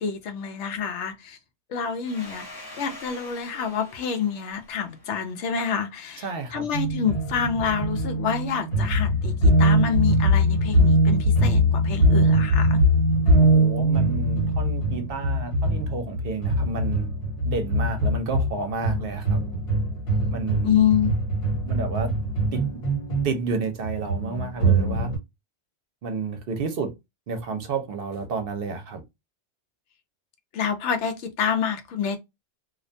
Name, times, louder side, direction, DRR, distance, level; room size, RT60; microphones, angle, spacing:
voice 1, 0.0-1.4 1.7-12.8 20.6-21.1 30.5-32.2, left 7 dB, 85° left, 0.9 m, -27 dB
Domestic sounds home sounds, 2.0-6.5, left 1 dB, 30° left, 0.5 m, -46 dB
voice 2, 6.2-6.7 13.4-17.1 17.4-19.4 20.3-20.9 21.6-22.1 22.5-22.7 23.2-25.1 26.0-26.9 27.3-29.0, right 4 dB, 60° right, 0.7 m, -30 dB
sound 1, 6.7-25.2, right 1 dB, 65° left, 1.4 m, -22 dB
2.4 x 2.1 x 2.5 m
omnidirectional pair, 1.2 m